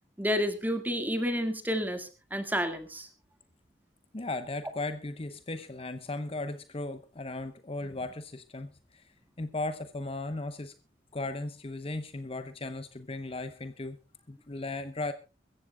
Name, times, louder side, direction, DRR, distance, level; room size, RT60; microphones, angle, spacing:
voice 1, 0.2-3.1, equal, 10° right, 8 dB, 2.0 m, -30 dB
voice 2, 4.1-9.1 9.4-10.7 11.1-14.0 14.3-15.1, left 2 dB, 30° left, 10 dB, 0.9 m, -36 dB
23.5 x 14.5 x 2.3 m, 0.29 s
head